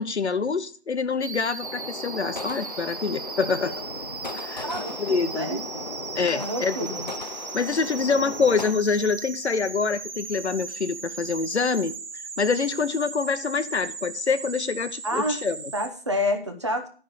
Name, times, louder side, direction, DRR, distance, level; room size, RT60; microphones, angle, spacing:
voice 1, 0.0-3.7 4.3-4.7 5.0-5.7 6.2-7.0 7.5-11.9 12.4-15.7, left 5 dB, 85° left, 12 dB, 1.0 m, -26 dB
sound 1, 1.2-15.9, right 4 dB, 85° right, 1.0 m, -38 dB
sound 2, 1.6-8.7, left 3 dB, 40° left, 0.5 m, -37 dB
voice 2, 4.6-5.9 6.3-7.1 15.0-15.4 15.7-16.9, equal, 25° right, 5 dB, 0.9 m, -29 dB
11.0 x 5.0 x 6.7 m, 0.41 s
figure-of-eight pair, 175°, 33 cm